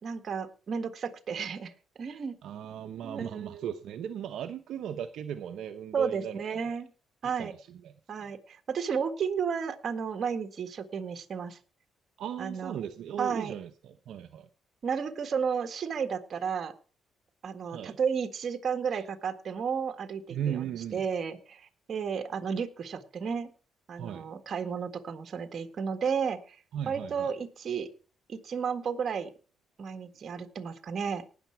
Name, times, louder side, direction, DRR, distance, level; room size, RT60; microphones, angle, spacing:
voice 1, 0.0-1.7 2.0-2.4 3.0-3.6 5.9-6.9 7.2-7.5 8.1-11.6 12.4-12.8 13.2-13.5 14.8-16.7 17.4-20.6 20.9-23.5 23.9-26.6 26.8-27.9 28.3-29.3 29.8-31.2, right 6 dB, 50° right, 8 dB, 1.7 m, -32 dB
voice 2, 2.4-6.8 7.2-8.0 8.2-8.3 12.2-14.5 17.7-18.0 18.9-19.0 20.3-21.1 24.0-24.3 26.7-27.3, right 9 dB, 75° right, 7 dB, 0.8 m, -37 dB
18.5 x 6.9 x 4.6 m, 0.38 s
cardioid pair, 90°, 0 cm